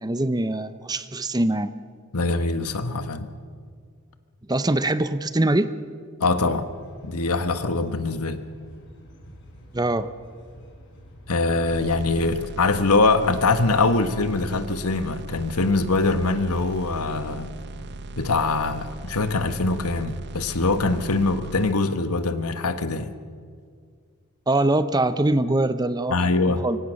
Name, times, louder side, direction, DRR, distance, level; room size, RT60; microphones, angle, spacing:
voice 1, 0.0-1.7 4.5-5.7 9.7-10.1 24.5-26.2 26.5-26.8, right 2 dB, 20° right, 12 dB, 0.7 m, -23 dB
voice 2, 2.1-3.3 6.2-6.7 7.0-8.4 11.3-17.5 18.1-23.1 26.1-26.6, left 3 dB, 80° left, 10 dB, 1.5 m, -23 dB
sound 1, 6.3-21.0, equal, 55° left, 5.9 m, -47 dB
sound 2, 11.7-21.7, right 2 dB, 50° right, 0.6 m, -39 dB
25.0 x 23.5 x 6.5 m, 2.1 s
head